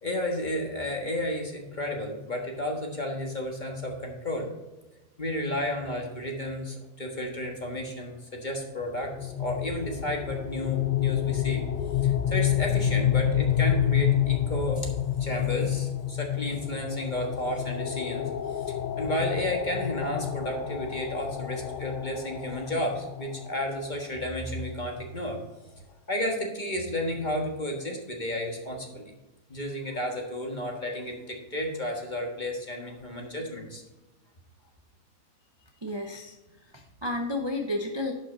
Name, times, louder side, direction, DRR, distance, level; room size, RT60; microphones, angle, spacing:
voice 1, 0.0-4.5 5.2-11.6 12.0-14.9 15.2-25.4 26.1-29.1 29.5-33.8, left 1 dB, 30° left, 2 dB, 1.6 m, -32 dB
sound 1, 9.0-23.9, left 10 dB, 85° left, 0.4 m, -28 dB
voice 2, 35.8-36.4 36.7-38.1, left 1 dB, 25° right, 2 dB, 0.7 m, -31 dB
11.0 x 5.6 x 4.0 m, 1.0 s
omnidirectional pair, 1.6 m